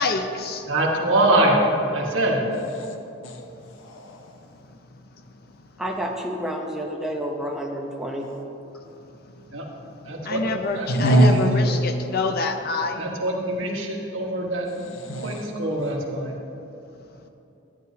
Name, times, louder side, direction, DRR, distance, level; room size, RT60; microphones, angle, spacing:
voice 1, 0.0-0.7 10.2-13.0, left 3 dB, 45° left, 0.5 m, -26 dB
voice 2, 0.7-1.6 1.9-2.4 9.5-9.6 10.1-10.4 10.7-11.1 13.0-14.7 15.2-16.3, right 1 dB, 65° right, 1.3 m, -23 dB
voice 3, 2.6-3.0 3.2-4.5 10.9-11.5 14.7-15.5, right 1 dB, 65° left, 0.9 m, -23 dB
voice 4, 5.8-8.3, equal, 5° right, 0.7 m, -29 dB
11.0 x 10.5 x 2.8 m
head